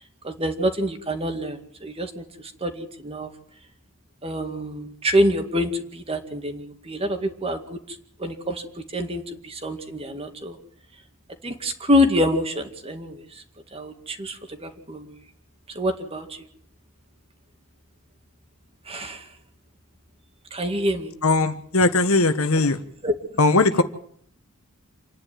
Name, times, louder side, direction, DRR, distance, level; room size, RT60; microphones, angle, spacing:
voice 1, 0.2-2.2 2.6-3.3 4.2-7.8 8.2-8.7 8.9-10.6 11.4-13.2 13.7-15.1 15.7-16.4 18.9-19.3 20.5-21.1 23.0-23.1, equal, 25° right, 2.1 m, -26 dB
voice 2, 21.2-22.8 23.4-23.8, left 3 dB, 75° left, 1.5 m, -19 dB
27.5 x 10.5 x 9.3 m
head